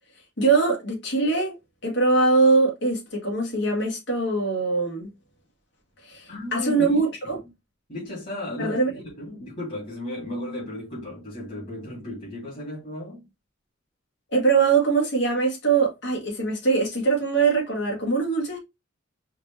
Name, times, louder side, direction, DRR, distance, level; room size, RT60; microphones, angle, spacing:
voice 1, 0.4-1.5 1.8-5.1 6.0-7.4 8.6-8.9 14.3-18.6, right 4 dB, 65° left, 2.2 m, -22 dB
voice 2, 6.3-7.3 7.9-8.8 9.2-13.2, left 1 dB, 40° left, 2.6 m, -34 dB
5.0 x 2.9 x 3.3 m
head